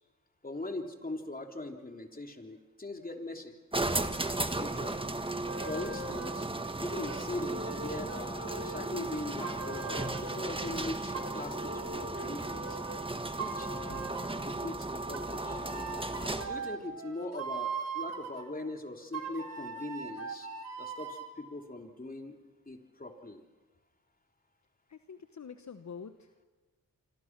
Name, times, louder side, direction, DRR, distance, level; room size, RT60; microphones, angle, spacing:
voice 1, 0.4-3.5 4.6-5.0 5.6-6.5 6.8-12.8 13.4-13.7 14.4-15.6 16.4-20.5 20.8-22.4 22.7-23.4, left 2 dB, 25° left, 3 dB, 3.3 m, -40 dB
sound 1, 3.7-16.6, right 2 dB, 15° right, 1.7 m, -35 dB
sound 2, 5.5-6.5 7.0-10.5 11.1-13.0 13.4-14.5 15.1-18.4 19.1-21.3, right 4 dB, 50° right, 4.4 m, -40 dB
sound 3, 13.9-15.9, left 6 dB, 75° left, 2.1 m, -56 dB
voice 2, 24.9-26.4, left 6 dB, 55° left, 8 dB, 1.2 m, -47 dB
26.0 x 26.0 x 6.1 m, 1.3 s
cardioid pair, 65°, 33 cm